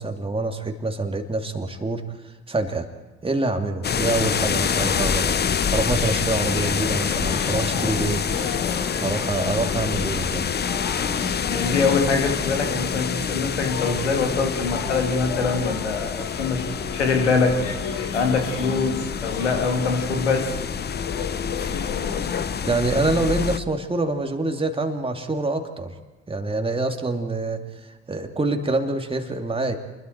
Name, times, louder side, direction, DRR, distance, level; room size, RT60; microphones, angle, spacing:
voice 1, 0.0-2.9 3.2-5.4 5.7-8.2 9.0-10.4 22.6-25.9 26.3-29.8, right 2 dB, 15° right, 4 dB, 2.5 m, -26 dB
sound 1, 3.8-23.6, left 7 dB, 30° left, 0.9 m, -27 dB
sound 2, 4.3-22.4, left 6 dB, 65° left, 3.4 m, -34 dB
voice 2, 11.5-17.6 18.1-20.5, left 4 dB, 85° left, 4 dB, 2.4 m, -24 dB
29.0 x 21.0 x 4.6 m, 1.1 s
figure-of-eight pair, 50°, 33 cm